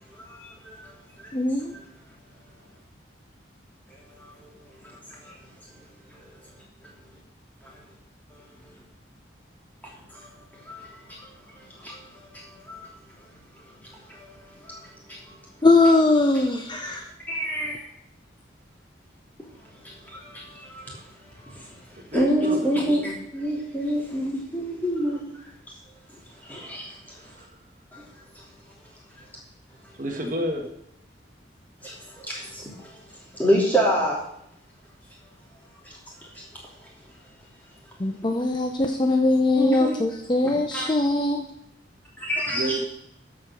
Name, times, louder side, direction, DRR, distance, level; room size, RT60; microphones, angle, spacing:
voice 1, 0.2-0.8 1.2-1.3 4.2-4.5 5.1-5.3 6.1-6.2 7.6-7.8 8.3-8.8 10.1-10.3 10.5-12.9 14.1-14.8 15.1-15.4 17.3-17.8 19.6-21.0 21.3-21.8 22.1-25.2 26.4-27.4 27.9-28.0 31.8-33.0 33.3-34.2 35.8-36.0 36.3-36.4 39.5-39.9 40.7-40.9 42.2-42.8, equal, 10° left, -4 dB, 3.1 m, -28 dB
voice 2, 1.3-1.7 15.6-17.1 38.0-41.4, left 2 dB, 25° left, 4 dB, 0.6 m, -21 dB
voice 3, 22.1-22.7 27.4-27.5 30.0-30.6 42.5-42.8, right 1 dB, 45° right, 3 dB, 1.4 m, -29 dB
14.0 x 5.1 x 6.2 m, 0.77 s
head